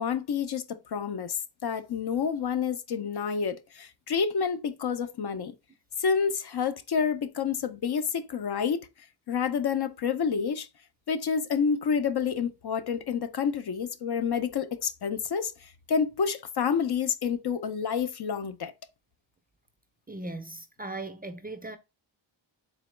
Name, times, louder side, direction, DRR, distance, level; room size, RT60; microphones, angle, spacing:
voice 1, 0.0-1.4 1.6-5.5 6.0-8.9 9.3-10.7 11.1-15.5 15.9-18.7, left 6 dB, 55° left, 0.5 m, -28 dB
voice 2, 20.1-21.8, right 2 dB, 20° right, 0.4 m, -38 dB
3.9 x 3.0 x 3.1 m
cardioid pair, 65°, 48 cm